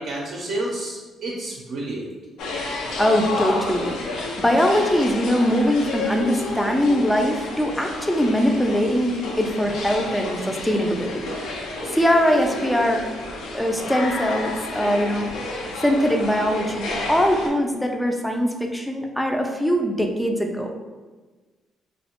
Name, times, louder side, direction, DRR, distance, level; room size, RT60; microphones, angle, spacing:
voice 1, 0.0-2.0, right 2 dB, 65° right, -3 dB, 0.4 m, -30 dB
sound 1, 2.4-17.5, left 2 dB, 90° left, 0.4 m, -31 dB
voice 2, 3.0-13.1 13.5-15.3 15.8-20.7, equal, 5° left, 3 dB, 0.3 m, -22 dB
2.4 x 2.0 x 2.8 m, 1.3 s
cardioid pair, 90°, 0 cm